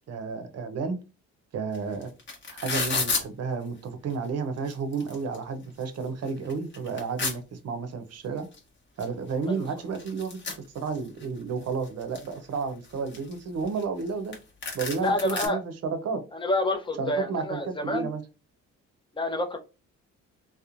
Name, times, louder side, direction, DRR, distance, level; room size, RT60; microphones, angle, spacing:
voice 1, 0.1-1.0 1.5-2.1 2.6-8.5 9.0-14.3 14.7-16.2 17.0-18.2, right 5 dB, 55° right, 0.6 m, -32 dB
sound 1, 1.7-3.2 4.1-4.2 4.6-5.4 5.8-5.9 6.3-7.4 8.5-8.6 9.0-9.1 9.3-11.3 11.7-12.3 12.8-14.1 14.3-14.4 14.6-15.5, left 4 dB, 40° left, 1.0 m, -31 dB
voice 2, 15.0-15.6 16.3-18.1 19.1-19.6, left 2 dB, 15° left, 0.5 m, -28 dB
2.9 x 2.1 x 2.4 m
cardioid pair, 90°, 30 cm